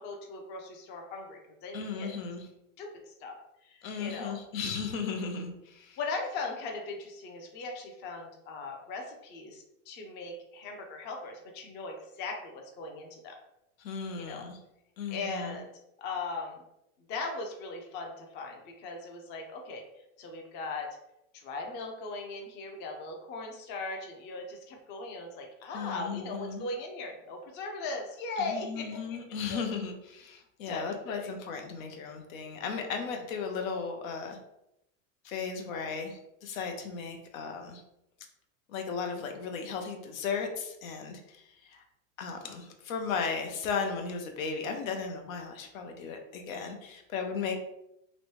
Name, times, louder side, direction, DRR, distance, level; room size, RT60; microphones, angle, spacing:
voice 1, 0.0-2.1 2.8-3.3 3.6-4.4 6.0-13.3 14.2-14.5 15.1-15.7 16.0-16.6 17.1-19.8 20.2-21.0 21.3-29.7 30.6-31.3, left 3 dB, 30° left, 2 dB, 0.5 m, -39 dB
voice 2, 1.7-2.4 3.8-6.0 13.8-14.6 15.0-15.6 25.7-26.7 28.4-34.4 35.2-37.8 38.7-41.8 42.2-47.5, left 5 dB, 80° left, 4 dB, 0.8 m, -36 dB
3.1 x 2.6 x 3.0 m, 0.84 s
supercardioid pair, 140°, 40 cm